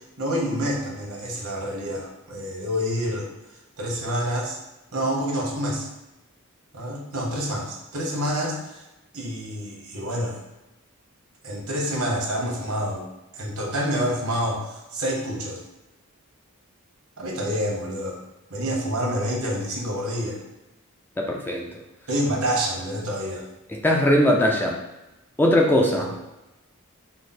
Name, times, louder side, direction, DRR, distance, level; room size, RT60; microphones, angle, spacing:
voice 1, 0.2-3.3 3.8-4.6 4.9-5.9 6.7-8.8 9.1-10.4 11.4-13.0 13.3-15.6 17.2-18.2 18.5-20.4 22.1-23.4 26.0-26.1, equal, 80° right, -1 dB, 1.2 m, -27 dB
voice 2, 21.2-21.7 23.7-24.8 25.4-26.1, left 1 dB, 10° left, 0 dB, 0.4 m, -20 dB
4.8 x 2.1 x 4.1 m, 1.0 s
head